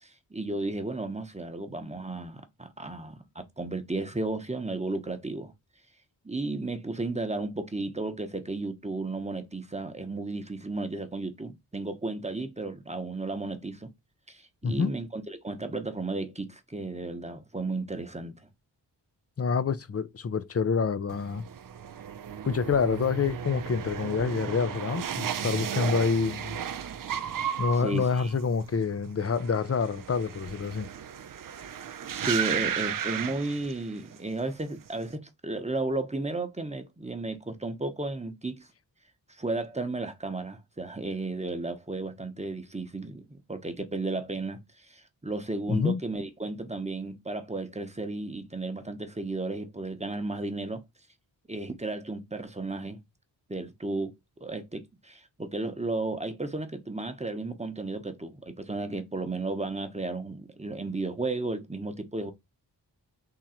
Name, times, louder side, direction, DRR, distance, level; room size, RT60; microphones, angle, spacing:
voice 1, 0.0-5.5 6.2-13.9 14.3-18.4 27.7-28.3 32.0-38.7 39.3-50.8 51.5-53.0 53.5-54.1 54.4-62.3, right 2 dB, 15° right, 0.9 m, -34 dB
voice 2, 19.4-21.4 22.4-26.6 27.6-30.9 45.7-46.0, left 5 dB, 35° left, 0.6 m, -27 dB
sound 1, 21.1-34.2 34.5-35.0, right 8 dB, 50° right, 0.5 m, -35 dB
3.8 x 2.9 x 4.3 m
cardioid pair, 65°, 42 cm